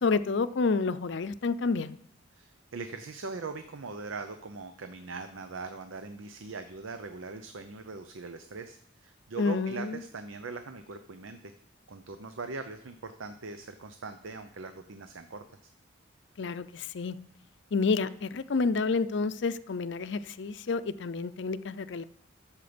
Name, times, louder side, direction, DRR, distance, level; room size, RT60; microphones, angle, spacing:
voice 1, 0.0-2.0 9.4-10.0 16.4-17.2 17.7-22.0, left 4 dB, 65° left, 14 dB, 0.5 m, -29 dB
voice 2, 2.3-11.5 11.9-15.7, right 4 dB, 90° right, 8 dB, 0.7 m, -41 dB
12.0 x 7.3 x 5.1 m, 0.65 s
head